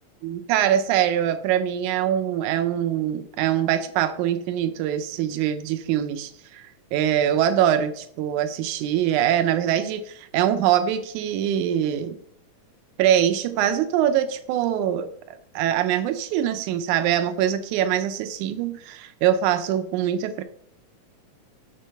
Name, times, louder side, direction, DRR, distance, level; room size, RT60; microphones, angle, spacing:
voice 1, 0.2-6.6 6.9-12.2 13.0-20.4, right 10 dB, 75° right, 9 dB, 2.0 m, -23 dB
6.3 x 4.5 x 5.6 m, 0.67 s
omnidirectional pair, 3.7 m